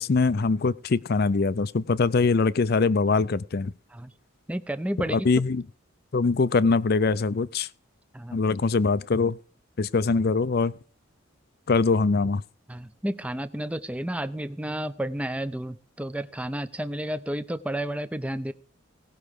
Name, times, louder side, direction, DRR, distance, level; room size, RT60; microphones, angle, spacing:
voice 1, 0.0-3.7 5.1-5.6 6.1-7.7 8.3-9.4 9.8-10.7 11.7-12.4, left 4 dB, 50° left, 0.5 m, -23 dB
voice 2, 4.5-5.3 8.1-8.4 12.7-18.5, right 1 dB, 5° right, 0.5 m, -31 dB
18.0 x 6.0 x 4.8 m
head